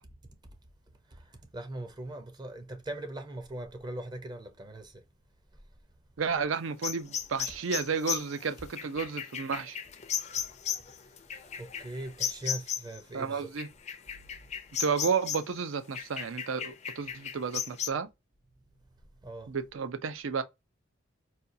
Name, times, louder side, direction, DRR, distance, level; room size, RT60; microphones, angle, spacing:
voice 1, 1.1-5.0 5.5-5.6 10.8-11.2 11.6-13.5 14.2-14.4 19.2-19.5, right 1 dB, 20° right, 0.6 m, -41 dB
voice 2, 6.2-9.8 13.1-13.7 14.8-18.1 19.5-20.4, right 5 dB, 75° right, 0.5 m, -32 dB
sound 1, 6.8-13.0 13.6-15.6 15.9-17.9, left 9 dB, 35° left, 0.4 m, -35 dB
4.2 x 2.3 x 2.6 m
head